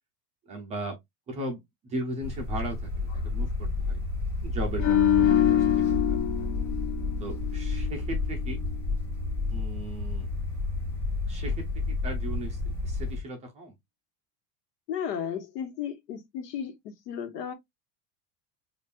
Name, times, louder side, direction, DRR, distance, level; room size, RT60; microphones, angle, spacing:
voice 1, 0.5-1.0 1.3-4.0 4.4-6.5 7.2-8.6 9.5-10.3 11.3-13.8, right 1 dB, 15° right, 0.4 m, -37 dB
sound 1, 2.2-13.2, left 3 dB, 5° left, 1.1 m, -31 dB
sound 2, 4.8-8.1 8.4-8.6, left 11 dB, 40° left, 0.5 m, -25 dB
voice 2, 14.9-16.7 17.1-17.5, left 8 dB, 85° left, 1.2 m, -34 dB
5.2 x 2.5 x 2.2 m
supercardioid pair, 160°, 47 cm